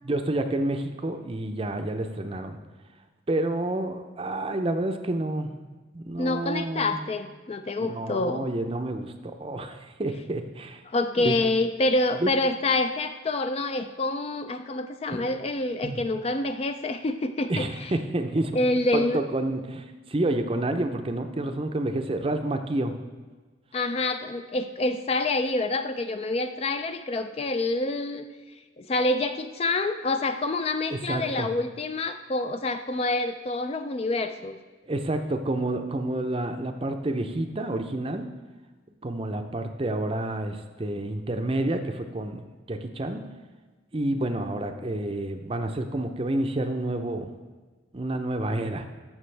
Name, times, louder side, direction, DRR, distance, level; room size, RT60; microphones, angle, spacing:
voice 1, 0.0-2.6 3.3-5.5 5.9-7.1 7.8-10.8 11.2-11.3 12.2-12.3 15.8-16.0 17.5-18.5 18.9-22.9 30.9-31.5 34.9-38.3 39.0-43.2 43.9-47.3 47.9-48.8, right 1 dB, 30° right, 7 dB, 0.5 m, -29 dB
voice 2, 6.2-8.5 10.9-17.9 18.5-19.2 23.7-28.3 28.8-34.6, left 2 dB, 30° left, 8 dB, 0.3 m, -27 dB
14.5 x 6.0 x 3.3 m, 1.3 s
head